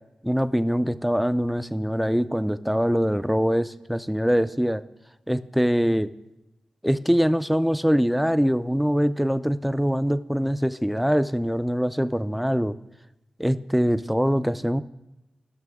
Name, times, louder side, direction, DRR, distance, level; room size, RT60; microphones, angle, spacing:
voice 1, 0.2-4.8 5.3-6.1 6.8-12.8 13.4-14.8, equal, ahead, 13 dB, 0.4 m, -23 dB
16.5 x 5.9 x 3.5 m, 0.96 s
cardioid pair, 60°, 2 cm